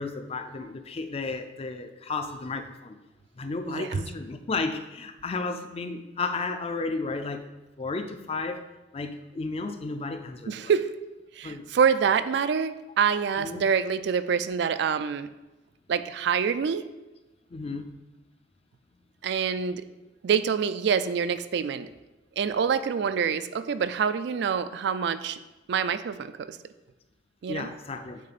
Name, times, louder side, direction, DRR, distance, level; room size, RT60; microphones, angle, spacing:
voice 1, 0.0-3.0 3.4-7.4 7.8-8.7 8.9-10.7 11.4-11.6 13.4-13.7 17.5-17.9 27.5-28.2, left 3 dB, 35° left, 8 dB, 0.4 m, -33 dB
voice 2, 3.7-4.0 10.5-10.9 11.4-15.3 15.9-16.9 19.2-19.8 20.2-21.9 22.4-25.4 25.7-26.6 27.4-27.7, right 6 dB, 65° right, 12 dB, 0.3 m, -26 dB
8.5 x 3.7 x 4.1 m, 1.1 s
head